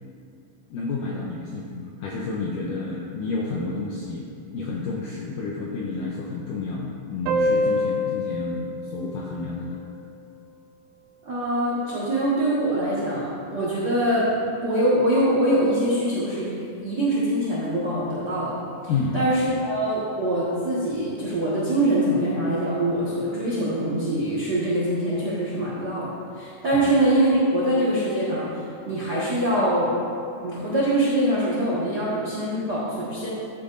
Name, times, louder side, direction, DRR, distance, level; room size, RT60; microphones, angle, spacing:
voice 1, 0.7-9.8 18.9-19.5 26.7-26.9, left 3 dB, 80° left, -3 dB, 1.9 m, -30 dB
sound 1, 7.3-10.4, left 1 dB, 85° right, 2.5 m, -27 dB
voice 2, 11.2-14.3 14.6-18.5 19.1-29.9 30.4-33.3, right 1 dB, 65° right, -8 dB, 1.0 m, -23 dB
13.5 x 8.5 x 2.6 m, 2.5 s
omnidirectional pair, 4.6 m